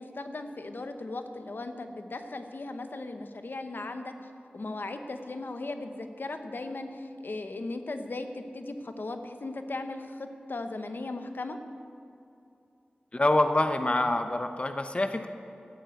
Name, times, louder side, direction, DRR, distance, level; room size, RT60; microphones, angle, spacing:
voice 1, 0.0-4.1 4.5-11.6, left 2 dB, 75° left, 7 dB, 1.0 m, -37 dB
voice 2, 13.1-15.3, left 2 dB, 35° left, 7 dB, 0.8 m, -26 dB
14.5 x 7.8 x 8.3 m, 2.6 s
wide cardioid pair, 60°, 3 cm